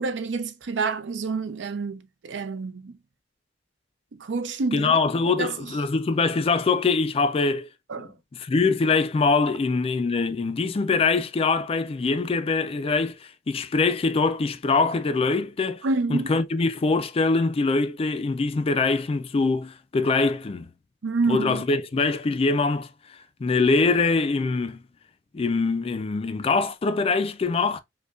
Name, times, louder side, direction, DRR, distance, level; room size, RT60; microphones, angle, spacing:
voice 1, 0.0-3.0 4.1-5.0 5.3-5.7 7.9-8.1 15.8-16.4 21.0-21.6, right 3 dB, 75° right, 0.5 m, -28 dB
voice 2, 4.7-7.7 8.0-15.8 16.1-20.7 21.3-22.9 23.4-24.8 25.3-27.8, left 4 dB, 30° left, 0.3 m, -23 dB
5.1 x 2.2 x 2.3 m
head